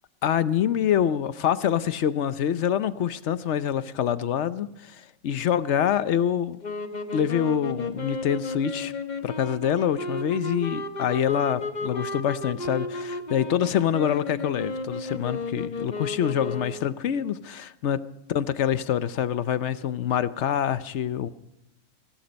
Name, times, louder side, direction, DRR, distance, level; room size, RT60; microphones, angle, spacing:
voice 1, 0.2-6.6 7.1-8.9 9.2-18.0 18.3-21.3, left 9 dB, 60° left, 0.9 m, -26 dB
sound 1, 6.6-17.0, left 3 dB, 35° left, 1.1 m, -33 dB
17.5 x 15.5 x 5.2 m
omnidirectional pair, 1.5 m